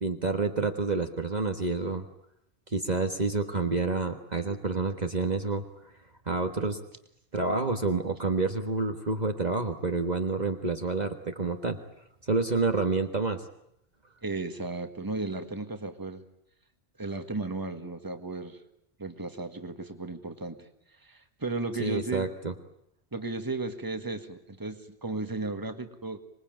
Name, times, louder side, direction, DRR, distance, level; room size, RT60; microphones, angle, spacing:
voice 1, 0.0-2.0 2.7-5.6 6.3-6.8 7.3-11.8 12.2-13.4 21.8-22.5, right 3 dB, 40° right, 5 dB, 1.6 m, -28 dB
voice 2, 14.2-16.2 17.0-18.6 19.0-20.7 21.0-22.3 23.1-26.2, right 3 dB, 20° right, 8 dB, 1.8 m, -35 dB
25.5 x 21.5 x 9.1 m, 0.77 s
omnidirectional pair, 1.1 m